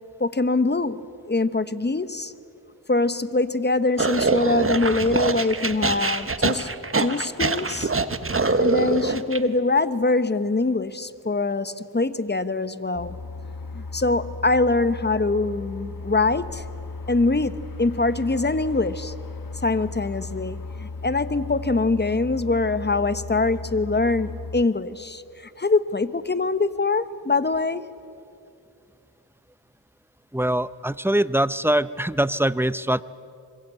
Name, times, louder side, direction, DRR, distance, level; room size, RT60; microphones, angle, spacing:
voice 1, 0.2-2.3 2.9-6.7 7.0-7.9 8.6-13.2 13.7-16.6 17.1-19.1 19.6-27.8, left 3 dB, 25° left, 1.1 m, -23 dB
sound 1, 4.0-9.4, right 3 dB, 35° right, 1.3 m, -24 dB
sound 2, 12.9-24.6, left 3 dB, 55° left, 1.5 m, -36 dB
voice 2, 30.3-33.0, right 1 dB, 5° right, 0.6 m, -23 dB
25.5 x 22.5 x 8.2 m
cardioid pair, 55°, 40 cm